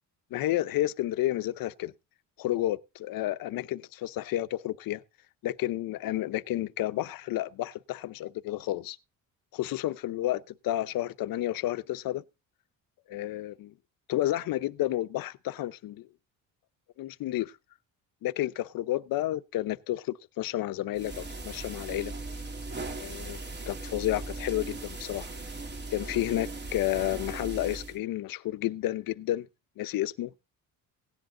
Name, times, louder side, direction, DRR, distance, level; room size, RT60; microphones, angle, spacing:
voice 1, 0.3-1.9 2.4-5.0 5.4-9.0 9.5-12.2 13.1-13.7 14.1-16.1 17.0-17.5 18.2-22.1 23.0-23.4 23.7-25.3 25.9-29.5 29.8-30.3, left 15 dB, 75° left, 0.9 m, -31 dB
sound 1, 20.9-28.0, right 2 dB, 30° right, 3.2 m, -38 dB
17.5 x 10.5 x 3.9 m
cardioid pair, 130°, 35 cm